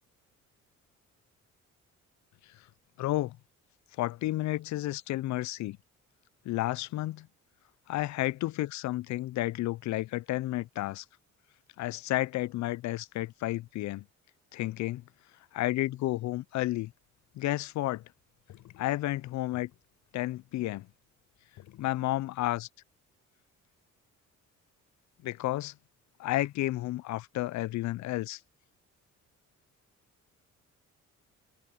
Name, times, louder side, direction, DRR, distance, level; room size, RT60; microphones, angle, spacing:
voice 1, 3.0-3.4 4.0-5.8 6.5-7.3 7.9-11.0 11.8-14.0 14.5-15.0 15.5-16.9 17.4-18.0 18.8-19.7 20.1-20.9 21.8-22.7 25.2-25.7 26.2-28.4, left 16 dB, 70° left, 0.5 m, -31 dB
sound 1, 16.4-17.5 17.9-22.5, left 14 dB, 85° left, 5.7 m, -55 dB
cardioid pair, 90°, 30 cm